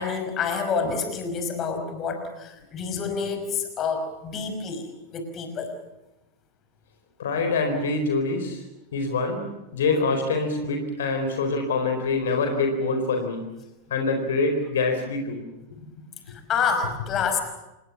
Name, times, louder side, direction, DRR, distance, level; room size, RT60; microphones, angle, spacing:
voice 1, 0.0-5.8 16.3-17.4, left 5 dB, 30° left, 6 dB, 5.5 m, -28 dB
voice 2, 7.2-8.6 8.9-13.5 13.9-15.4, left 3 dB, 60° left, 5 dB, 4.3 m, -25 dB
28.0 x 20.0 x 7.3 m, 0.97 s
figure-of-eight pair, 90°, 0 cm